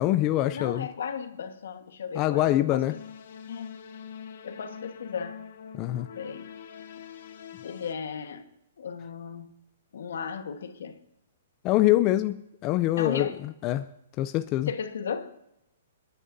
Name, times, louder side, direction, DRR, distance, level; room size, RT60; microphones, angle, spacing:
voice 1, 0.0-0.9 2.1-3.0 5.7-6.1 11.6-13.3 13.6-13.8 14.2-14.7, left 15 dB, 25° left, 0.3 m, -24 dB
voice 2, 0.5-3.0 3.5-3.8 4.4-5.4 6.1-6.5 7.6-8.5 8.8-9.6 9.9-11.0 13.0-13.5 14.7-15.4, left 6 dB, 70° left, 1.3 m, -35 dB
sound 1, 2.9-7.9, left 7 dB, 50° left, 0.9 m, -44 dB
29.0 x 9.9 x 2.7 m
hypercardioid pair, 165°, 0 cm